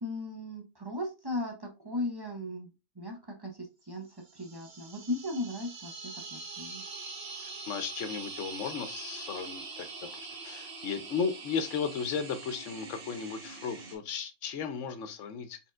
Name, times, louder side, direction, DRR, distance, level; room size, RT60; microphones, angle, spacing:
voice 1, 0.0-2.7 3.0-4.1 4.3-6.8, left 2 dB, 30° right, 1 dB, 0.5 m, -37 dB
sound 1, 4.2-14.0, right 4 dB, 55° right, 1.0 m, -43 dB
voice 2, 7.4-9.9 10.2-15.6, left 6 dB, 70° left, 9 dB, 0.9 m, -35 dB
4.2 x 3.6 x 2.4 m, 0.26 s
omnidirectional pair, 1.4 m